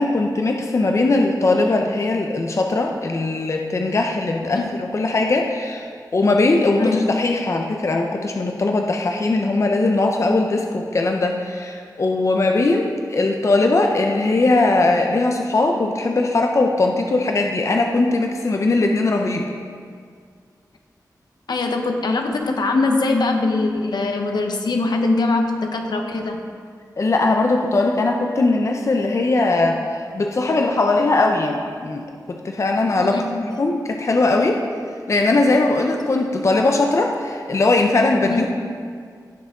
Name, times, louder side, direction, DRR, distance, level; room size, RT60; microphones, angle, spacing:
voice 1, 0.0-19.5 27.0-34.6 35.1-38.5, left 2 dB, 45° left, 2 dB, 0.7 m, -20 dB
voice 2, 21.5-26.4 33.0-33.4 38.2-38.5, left 3 dB, 80° left, 4 dB, 0.9 m, -22 dB
15.5 x 6.1 x 3.7 m, 2.1 s
wide cardioid pair, 105°, 7 cm